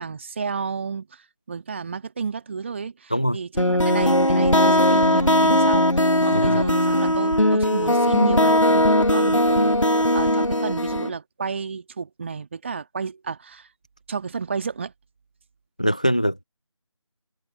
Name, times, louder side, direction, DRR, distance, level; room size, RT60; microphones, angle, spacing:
voice 1, 0.0-13.7 14.1-14.9, right 5 dB, 25° right, 2.0 m, -31 dB
sound 1, 3.6-11.1, left 1 dB, 90° left, 2.4 m, -19 dB
voice 2, 15.8-16.4, equal, 15° left, 0.5 m, -22 dB
figure-of-eight pair, 165°, 16 cm